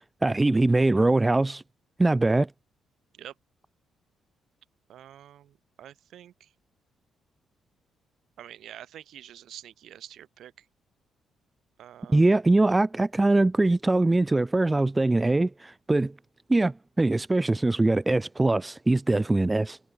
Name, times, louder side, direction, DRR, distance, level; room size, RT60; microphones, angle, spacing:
voice 1, 0.2-1.6 2.0-2.5 12.1-16.1 16.5-19.8, right 2 dB, 15° right, 0.9 m, -22 dB
voice 2, 4.9-6.5 8.4-10.5 11.8-12.2, right 11 dB, 70° right, 5.5 m, -46 dB
cardioid pair, 90°, 0 cm